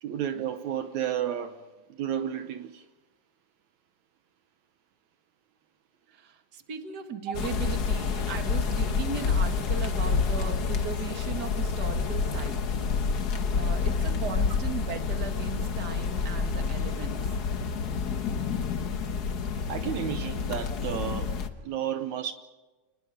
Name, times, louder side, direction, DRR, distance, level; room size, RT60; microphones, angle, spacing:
voice 1, 0.0-1.6 2.0-2.8 19.7-22.3, right 10 dB, 75° right, 2.2 m, -32 dB
voice 2, 6.1-12.6 13.5-17.2, right 6 dB, 35° right, 2.1 m, -37 dB
sound 1, 7.3-21.5, left 5 dB, 60° left, 1.0 m, -28 dB
29.5 x 20.5 x 5.0 m
omnidirectional pair, 3.5 m